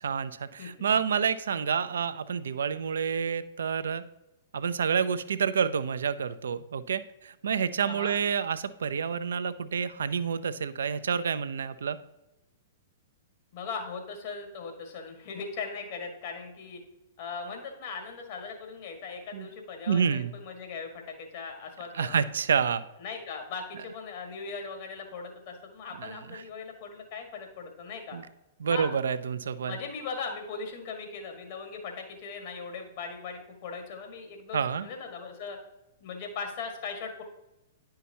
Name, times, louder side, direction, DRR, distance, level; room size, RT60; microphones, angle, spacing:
voice 1, 0.0-4.0 4.5-12.0 19.3-19.5 19.9-20.3 21.9-22.8 26.0-26.4 28.1-28.2 28.6-29.8 34.5-34.9, right 7 dB, 70° right, 13 dB, 0.4 m, -28 dB
voice 2, 7.8-8.1 13.5-16.8 17.2-22.2 23.0-28.2 28.7-28.9 29.6-35.6 36.0-37.2, left 5 dB, 50° left, 3 dB, 1.6 m, -39 dB
9.9 x 5.7 x 2.8 m, 0.95 s
figure-of-eight pair, 110°, 0 cm